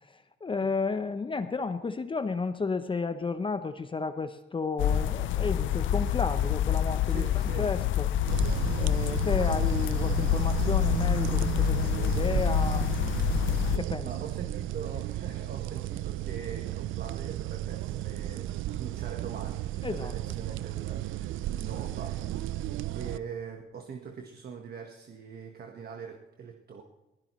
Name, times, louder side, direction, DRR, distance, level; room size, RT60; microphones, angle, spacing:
voice 1, 0.0-7.2 7.6-8.1 8.8-13.0 13.8-14.1 19.8-20.1, left 4 dB, 25° left, 10 dB, 0.7 m, -32 dB
sound 1, 4.8-13.8, left 11 dB, 75° left, 0.5 m, -27 dB
voice 2, 7.0-7.7 14.0-22.6 22.9-26.8, right 6 dB, 50° right, 4 dB, 1.3 m, -43 dB
sound 2, 8.3-23.2, right 14 dB, 80° right, 0.5 m, -33 dB
21.0 x 15.5 x 3.1 m, 1.0 s
cardioid pair, 90°, 20 cm